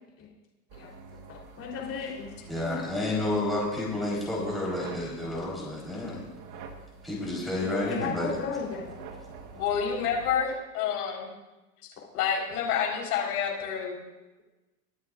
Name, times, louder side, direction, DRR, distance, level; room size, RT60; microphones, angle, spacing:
sound 1, 0.7-10.3, right 4 dB, 35° right, 1.6 m, -47 dB
voice 1, 1.3-2.3 2.6-2.8 6.1-6.2 7.6-8.9, left 5 dB, 30° left, -2 dB, 4.0 m, -35 dB
voice 2, 2.5-6.2 7.0-8.4, left 1 dB, ahead, -6 dB, 4.3 m, -30 dB
voice 3, 9.5-11.3 12.1-14.0, left 7 dB, 65° left, -2 dB, 4.7 m, -28 dB
22.5 x 9.5 x 2.6 m, 1.1 s
hypercardioid pair, 120°, 48 cm